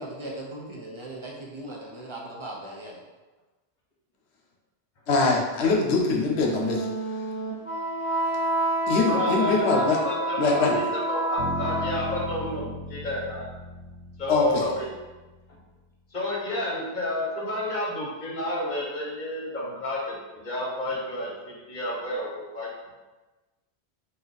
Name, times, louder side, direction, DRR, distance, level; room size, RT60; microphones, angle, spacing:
voice 1, 0.0-3.0, right 1 dB, 40° right, -3 dB, 0.4 m, -38 dB
voice 2, 5.1-6.9 8.9-10.0 10.4-10.7 14.3-14.7, left 3 dB, 80° left, 0 dB, 0.9 m, -23 dB
Wind instrument woodwind instrument, 6.2-12.5, right 2 dB, 15° left, 0.8 m, -29 dB
voice 3, 9.1-13.5 14.2-14.9 15.5-15.6 16.1-22.7, left 1 dB, 50° left, -4 dB, 0.9 m, -31 dB
sound 1, 11.4-15.3, left 1 dB, 55° right, 1.8 m, -37 dB
2.7 x 2.5 x 3.8 m, 1.2 s
omnidirectional pair, 1.1 m